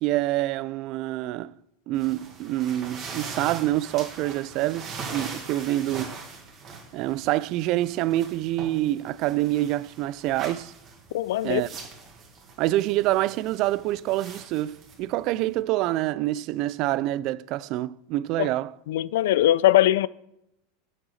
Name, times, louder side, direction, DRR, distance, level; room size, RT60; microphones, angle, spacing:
voice 1, 0.0-1.5 1.9-6.2 6.9-10.7 11.4-11.7 12.6-18.7, right 15 dB, 45° right, 0.3 m, -26 dB
sound 1, 1.9-15.6, right 4 dB, 30° right, 1.9 m, -42 dB
voice 2, 11.1-11.6 18.4-18.5 18.9-20.1, left 13 dB, 80° left, 0.4 m, -21 dB
7.4 x 6.4 x 6.4 m
supercardioid pair, 150°, 0 cm